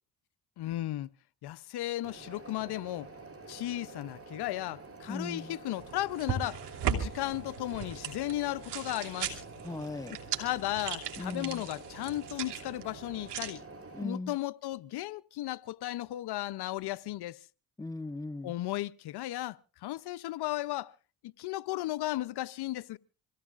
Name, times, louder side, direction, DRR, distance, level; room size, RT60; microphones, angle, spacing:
voice 1, 0.6-1.1 1.4-3.1 3.5-9.4 10.4-13.6 14.0-17.5 18.4-20.9 21.2-23.0, left 15 dB, 70° left, 0.6 m, -35 dB
sound 1, 2.0-14.0, right 3 dB, 35° right, 3.7 m, -48 dB
voice 2, 5.1-5.5 9.6-10.2 11.2-11.6 13.9-14.3 17.8-18.5, left 2 dB, 10° left, 0.7 m, -38 dB
sound 2, 5.8-13.5, right 7 dB, 80° right, 2.7 m, -38 dB
26.0 x 16.5 x 2.5 m
supercardioid pair, 60°, 41 cm